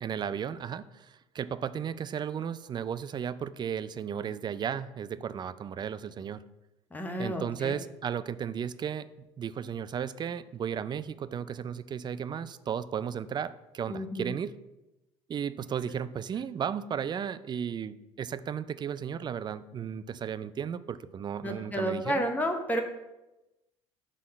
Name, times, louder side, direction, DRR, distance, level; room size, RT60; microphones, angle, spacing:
voice 1, 0.0-6.4 7.2-14.6 15.3-22.2, right 8 dB, 30° right, 15 dB, 0.4 m, -34 dB
voice 2, 6.9-7.7 13.9-14.3 21.4-22.8, equal, 10° left, 4 dB, 0.9 m, -31 dB
6.2 x 3.7 x 5.2 m, 1.0 s
hypercardioid pair, 70°, 15 cm